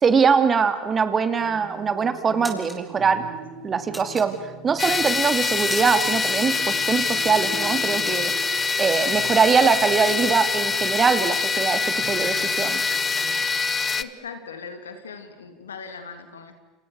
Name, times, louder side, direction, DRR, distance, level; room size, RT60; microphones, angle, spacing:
voice 1, 0.0-3.2 3.6-4.4 4.6-8.3 8.8-12.8, right 6 dB, 30° right, 10 dB, 2.9 m, -22 dB
sound 1, 1.4-1.8 2.2-2.8 3.9-4.8 5.2-6.2 6.5-6.7 7.1-8.8 9.2-9.3 9.6-10.4, right 1 dB, 5° right, 5.9 m, -39 dB
sound 2, 1.4-13.4, right 5 dB, 70° right, 4.9 m, -42 dB
sound 3, 4.8-14.0, left 4 dB, 20° left, 1.2 m, -24 dB
voice 2, 14.0-16.5, left 5 dB, 85° left, 8 dB, 3.1 m, -39 dB
29.5 x 29.0 x 6.6 m, 1.1 s
hypercardioid pair, 75°, 0 cm